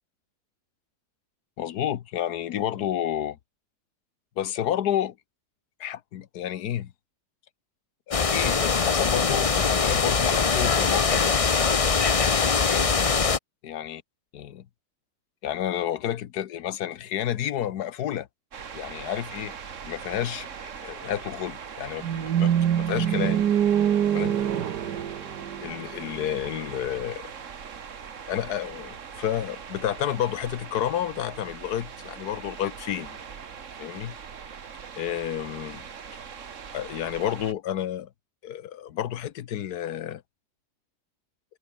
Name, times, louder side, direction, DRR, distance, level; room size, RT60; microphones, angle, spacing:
voice 1, 1.6-3.4 4.4-5.1 5.8-6.9 8.1-11.6 12.5-12.9 13.6-14.0 14.3-14.6 15.4-18.3 18.7-19.5 19.8-20.5 20.8-23.4 24.1-24.4 25.6-27.2 28.3-33.2 33.8-34.2 34.9-35.8 36.7-38.1 38.4-40.2, left 11 dB, 70° left, 1.5 m, -30 dB
sound 1, 8.1-13.4, left 5 dB, 35° left, 0.6 m, -22 dB
sound 2, 18.5-37.5, right 6 dB, 50° right, 1.6 m, -41 dB
sound 3, 22.0-26.1, right 9 dB, 80° right, 1.7 m, -24 dB
omnidirectional pair, 1.8 m